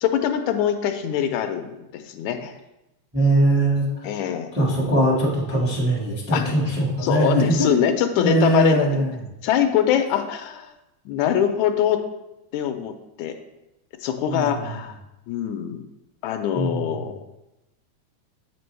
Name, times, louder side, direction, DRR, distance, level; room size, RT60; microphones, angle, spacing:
voice 1, 0.0-2.5 4.0-4.5 6.3-6.6 7.0-9.0 9.4-10.7 11.1-12.0 12.5-12.9 13.2-13.4 14.0-15.0 15.3-15.9 16.2-17.2, left 9 dB, 85° left, 7 dB, 1.9 m, -23 dB
voice 2, 3.1-3.9 4.5-7.9 8.2-9.2 14.3-14.7 16.5-16.9, right 1 dB, 10° right, -4 dB, 0.6 m, -21 dB
8.0 x 5.2 x 3.2 m, 0.93 s
omnidirectional pair, 3.3 m